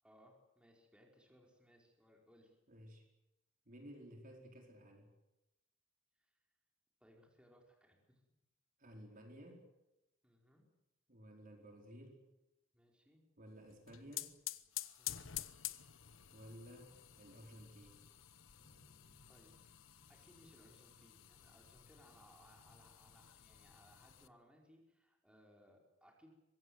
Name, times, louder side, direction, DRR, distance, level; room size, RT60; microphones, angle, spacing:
voice 1, 0.0-2.6 6.2-6.3 7.0-8.2 10.2-10.6 12.7-13.2 15.0-15.3 19.3-19.5 20.1-26.4, equal, 5° right, 0 dB, 5.1 m, -66 dB
voice 2, 2.7-3.0 3.7-5.1 8.8-9.7 11.1-12.3 13.4-14.3 16.3-18.0, equal, 45° right, 2 dB, 4.6 m, -55 dB
sound 1, 13.7-24.3, left 13 dB, 85° left, 1.0 m, -50 dB
sound 2, 18.5-22.9, equal, 65° left, 5.4 m, -73 dB
24.5 x 21.5 x 8.1 m, 0.91 s
head